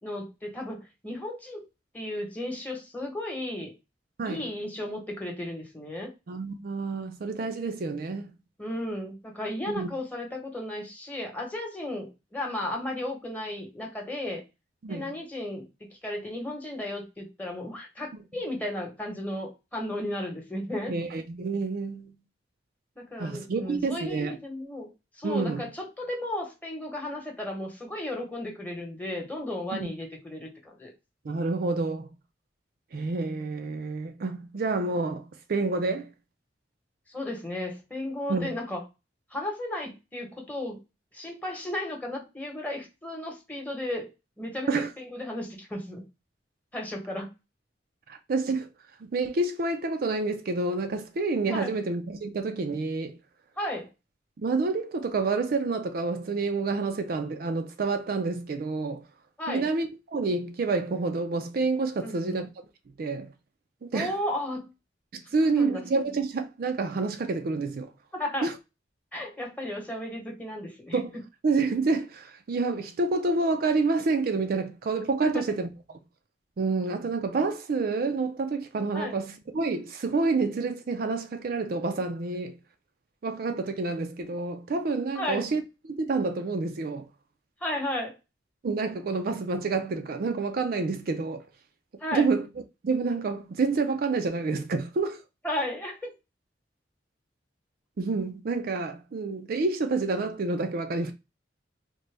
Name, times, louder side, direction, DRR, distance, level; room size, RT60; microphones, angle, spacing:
voice 1, 0.0-1.6 1.9-3.7 4.2-6.1 8.6-14.4 14.9-20.9 23.0-24.9 25.2-30.9 37.1-38.8 39.3-40.8 41.1-44.1 44.4-46.0 46.7-47.3 51.5-51.7 53.6-53.9 59.4-59.7 62.0-62.4 63.9-64.7 65.4-65.8 68.1-68.5 69.1-71.0 75.2-75.3 78.9-79.2 85.1-85.5 87.6-88.1 92.0-92.3 95.4-96.1, left 1 dB, 10° left, 1.0 m, -34 dB
voice 2, 6.3-8.3 9.7-9.9 14.8-15.1 20.9-22.2 23.2-24.4 25.2-25.7 29.7-29.9 31.2-32.1 32.9-36.1 38.3-38.5 44.7-44.9 48.1-48.7 49.0-53.2 54.4-59.0 59.5-62.5 63.0-63.3 63.8-64.1 65.1-67.9 68.4-68.5 70.9-71.1 71.4-75.7 76.6-82.6 83.2-87.1 88.6-91.4 92.1-92.5 92.8-95.2 98.0-101.1, right 3 dB, 55° right, 0.4 m, -28 dB
3.8 x 2.2 x 3.3 m
head